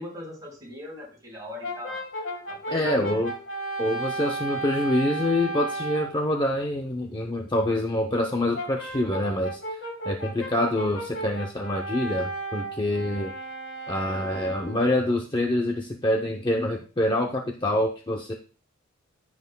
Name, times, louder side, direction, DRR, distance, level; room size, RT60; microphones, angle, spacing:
voice 1, 0.0-2.0 2.5-3.2, left 1 dB, 15° right, -3 dB, 4.6 m, -40 dB
Brass instrument, 1.6-6.2 8.5-14.9, right 2 dB, 60° left, 1.6 m, -34 dB
voice 2, 2.7-3.3 3.8-9.6 10.0-13.3 13.9-18.3, left 1 dB, 20° left, 2 dB, 0.7 m, -26 dB
14.5 x 6.0 x 2.3 m, 0.37 s
head